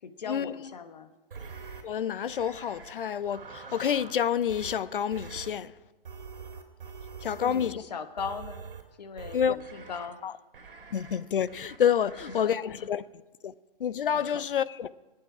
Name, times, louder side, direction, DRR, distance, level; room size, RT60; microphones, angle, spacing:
voice 1, 0.0-1.1 7.2-8.6 9.0-10.4 12.4-12.6 14.1-14.4, left 6 dB, 45° left, 1.1 m, -39 dB
sound 1, 1.3-1.8 2.3-2.9 3.2-4.2 4.5-4.8 5.1-5.5 6.1-7.8 8.2-8.8 9.2-10.1 10.5-11.2 11.5-11.8 12.1-12.4, right 5 dB, 65° right, 2.6 m, -44 dB
voice 2, 1.8-5.7 7.2-7.8 9.3-9.6 10.2-10.3 10.9-13.0 13.4-13.5 13.8-14.9, left 8 dB, 65° left, 0.6 m, -28 dB
23.0 x 8.9 x 4.9 m
hypercardioid pair, 165°, 29 cm